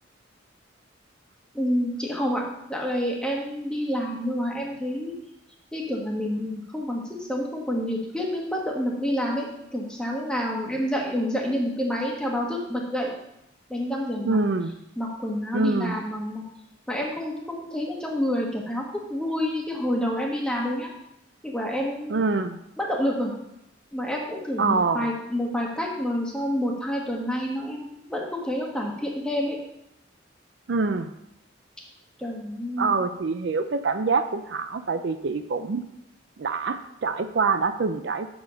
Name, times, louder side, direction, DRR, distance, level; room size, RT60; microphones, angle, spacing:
voice 1, 1.5-2.4 2.7-5.1 5.7-13.1 13.7-14.4 15.0-16.4 16.9-20.9 21.4-22.2 22.8-23.3 23.9-29.6 32.2-32.9, equal, 5° left, -1 dB, 1.3 m, -28 dB
voice 2, 14.2-14.7 15.5-16.0 22.1-22.6 24.6-25.1 30.7-31.1 32.8-35.8 36.4-38.3, right 4 dB, 60° right, 9 dB, 0.4 m, -25 dB
7.1 x 5.0 x 6.3 m, 0.82 s
head